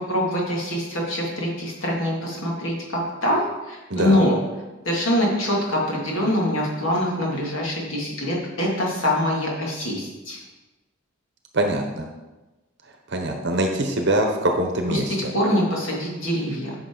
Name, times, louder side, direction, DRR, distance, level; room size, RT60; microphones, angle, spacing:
voice 1, 0.1-4.4 4.8-10.4 14.9-16.7, left 1 dB, 65° left, -3 dB, 2.4 m, -24 dB
voice 2, 11.5-12.1 13.1-15.3, right 1 dB, 55° right, 3 dB, 0.9 m, -23 dB
9.3 x 6.2 x 3.9 m, 1.1 s
head